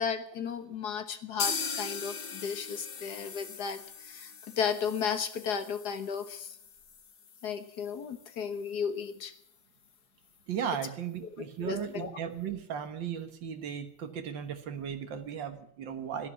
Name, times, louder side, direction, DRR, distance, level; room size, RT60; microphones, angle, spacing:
voice 1, 0.0-6.6 7.4-9.3 11.6-12.1, left 6 dB, 60° left, 10 dB, 1.8 m, -34 dB
sound 1, 1.4-9.1 9.4-9.5 9.8-9.9 10.4-10.5, left 6 dB, 45° left, 0.8 m, -40 dB
voice 2, 10.5-16.3, right 8 dB, 80° right, 8 dB, 2.0 m, -36 dB
13.5 x 10.0 x 9.8 m, 0.69 s
omnidirectional pair, 2.0 m